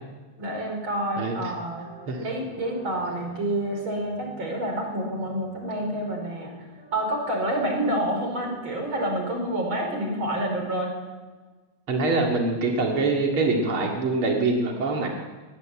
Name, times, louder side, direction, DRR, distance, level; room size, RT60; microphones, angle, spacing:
voice 1, 0.4-1.9 2.2-6.5 6.9-10.9, right 1 dB, 25° right, 2 dB, 5.3 m, -28 dB
voice 2, 1.2-1.5 2.1-2.2 11.9-15.1, right 3 dB, 45° right, 0 dB, 1.8 m, -24 dB
sound 1, 1.7-10.6, right 1 dB, 65° right, 9.0 m, -48 dB
23.0 x 20.5 x 8.6 m, 1.3 s
omnidirectional pair, 6.0 m